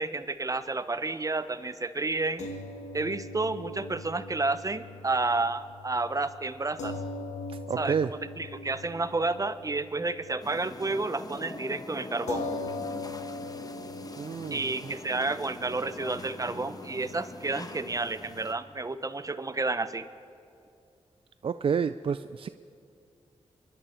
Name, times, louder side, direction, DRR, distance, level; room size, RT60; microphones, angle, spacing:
voice 1, 0.0-2.5 2.9-7.0 7.8-12.5 14.5-20.0, right 3 dB, 30° right, 12 dB, 0.9 m, -31 dB
sound 1, 2.4-10.9 11.2-11.4 12.3-18.8, left 2 dB, 90° left, 1.3 m, -41 dB
voice 2, 7.5-8.1 14.2-14.9 21.4-22.5, right 6 dB, 50° right, 12 dB, 0.4 m, -30 dB
sound 2, 10.4-18.5, left 2 dB, 30° left, 1.1 m, -43 dB
24.5 x 11.5 x 4.4 m, 2.5 s
cardioid pair, 55°, 12 cm